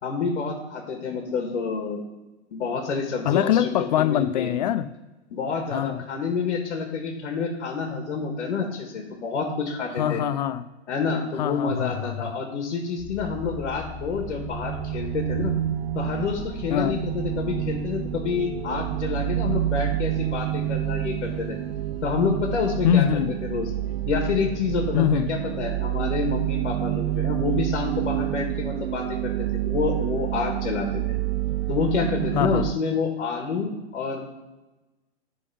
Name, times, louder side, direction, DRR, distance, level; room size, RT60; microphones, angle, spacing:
voice 1, 0.0-2.0 2.5-4.5 5.3-10.2 10.9-15.5 15.9-21.6 22.0-23.0 23.4-23.7 24.1-31.0 31.7-34.3, left 5 dB, 80° left, 2 dB, 1.7 m, -28 dB
voice 2, 3.2-4.9 5.7-6.0 10.0-10.6 11.4-12.3 16.7-17.0 22.8-23.3 24.9-25.3 32.3-32.6, left 10 dB, 40° left, 13 dB, 0.4 m, -23 dB
sound 1, 13.0-27.8, left 8 dB, 10° left, 1.5 m, -44 dB
sound 2, 13.2-32.7, right 14 dB, 65° right, 0.5 m, -28 dB
9.8 x 3.8 x 5.4 m, 1.1 s
hypercardioid pair, 155°, 34 cm